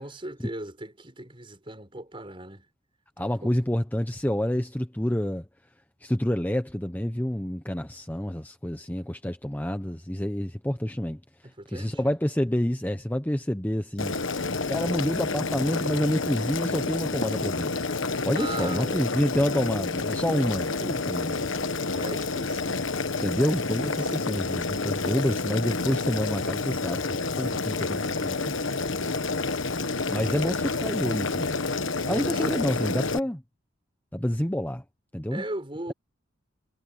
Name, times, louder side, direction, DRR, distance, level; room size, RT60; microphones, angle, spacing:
voice 1, 0.0-2.7 3.2-3.5 11.4-12.0 18.3-19.1 21.9-22.9 24.0-24.4 25.0-25.2 30.1-30.5 32.0-33.0 35.3-35.9, right 1 dB, 25° right, 5.2 m, -39 dB
voice 2, 3.2-5.4 6.0-17.9 18.2-21.6 23.2-28.7 30.1-31.5 32.1-33.4 34.1-34.8 35.1-35.4, equal, 10° left, 0.9 m, -28 dB
Boiling, 14.0-33.2, left 3 dB, 65° left, 1.3 m, -29 dB
head